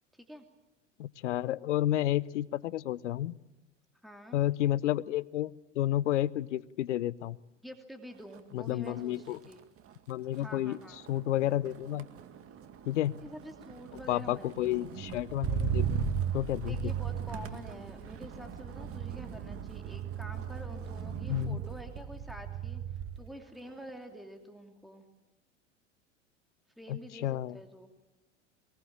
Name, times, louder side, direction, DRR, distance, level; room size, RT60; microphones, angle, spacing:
voice 1, 1.0-3.3 4.3-7.4 8.5-9.4 10.1-10.8 11.1-12.1 12.9-13.1 14.1-16.1 16.3-16.9 21.3-21.6 26.9-27.6, left 13 dB, 75° left, 19 dB, 0.8 m, -31 dB
voice 2, 4.0-4.4 7.6-9.6 10.3-11.0 13.2-14.9 16.7-22.8 23.2-25.1 26.8-27.9, equal, ahead, 4 dB, 2.8 m, -47 dB
Motor vehicle (road), 8.2-8.5 8.9-23.3 23.7-24.1, right 8 dB, 40° right, 2.1 m, -37 dB
23.0 x 21.0 x 8.8 m, 1.0 s
hypercardioid pair, 85°, 36 cm